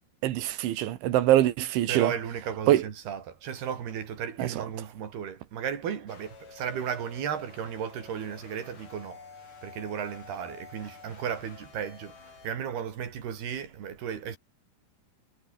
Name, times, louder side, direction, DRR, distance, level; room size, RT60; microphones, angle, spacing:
voice 1, 0.2-2.1 2.7-2.8 4.4-4.5, right 13 dB, 80° right, 4.0 m, -23 dB
voice 2, 1.9-9.3 9.6-14.4, right 8 dB, 60° right, 4.8 m, -35 dB
sound 1, 6.1-12.5, left 5 dB, 45° left, 6.1 m, -50 dB
omnidirectional pair, 5.5 m